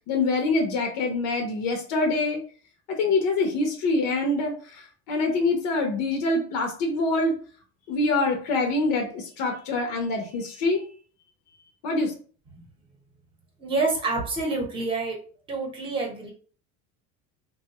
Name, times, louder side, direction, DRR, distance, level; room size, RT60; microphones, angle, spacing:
voice 1, 0.1-2.4 2.9-7.4 7.9-10.8 11.8-12.1, left 2 dB, 60° left, 3 dB, 0.8 m, -25 dB
voice 2, 13.6-15.2 15.5-16.3, right 3 dB, 15° right, 0 dB, 0.9 m, -27 dB
3.5 x 2.3 x 2.9 m, 0.41 s
cardioid pair, 170°, 31 cm